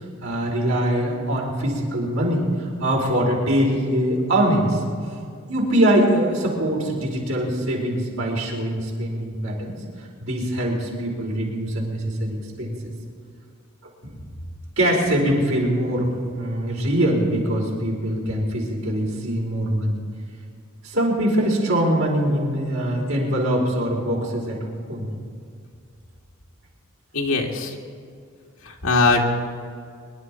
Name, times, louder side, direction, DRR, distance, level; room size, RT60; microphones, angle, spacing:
voice 1, 0.2-4.8 5.5-9.8 10.2-12.7 14.0-14.1 14.8-20.0 20.8-24.6 24.9-25.1, right 1 dB, 75° right, -2 dB, 4.7 m, -23 dB
voice 2, 27.1-27.7 28.7-29.2, left 3 dB, 85° left, 0 dB, 2.0 m, -20 dB
24.5 x 11.5 x 4.5 m, 2.2 s
head